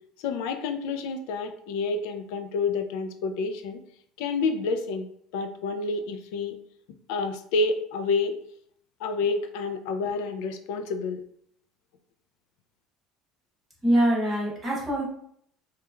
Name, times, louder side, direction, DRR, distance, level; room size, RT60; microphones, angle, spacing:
voice 1, 0.2-3.8 4.2-5.1 5.3-6.6 7.1-8.3 9.0-11.2, left 3 dB, 80° left, 7 dB, 0.3 m, -29 dB
voice 2, 13.8-15.0, right 1 dB, 10° right, -5 dB, 0.8 m, -23 dB
2.9 x 2.2 x 2.3 m, 0.66 s
cardioid pair, 170°, 0 cm